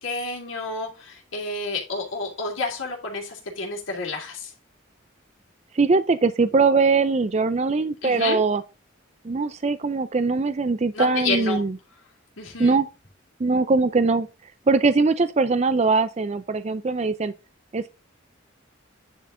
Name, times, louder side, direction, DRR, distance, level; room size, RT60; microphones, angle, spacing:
voice 1, 0.0-4.5 8.0-8.4 10.9-11.6 12.4-12.8, left 3 dB, 80° left, 3.1 m, -30 dB
voice 2, 5.7-8.6 9.2-11.7 12.6-12.9 13.4-17.3 17.7-17.9, right 4 dB, 35° right, 0.4 m, -21 dB
10.0 x 5.5 x 3.8 m
head